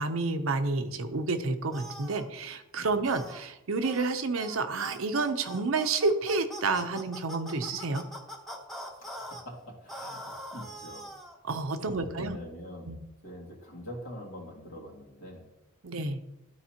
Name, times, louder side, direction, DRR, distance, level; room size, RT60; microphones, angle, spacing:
voice 1, 0.0-8.0 11.4-12.4 12.8-13.0 15.8-16.2, right 3 dB, 80° right, 8 dB, 0.7 m, -30 dB
sound 1, 1.7-2.3 3.0-3.4 3.8-4.1 4.4-4.6 4.8-9.4 9.9-11.4, right 1 dB, ahead, 0.8 m, -42 dB
voice 2, 9.0-10.2 10.5-11.1 11.8-12.9 13.2-15.5, left 1 dB, 75° left, -3 dB, 2.2 m, -44 dB
12.0 x 4.1 x 2.9 m, 0.90 s
head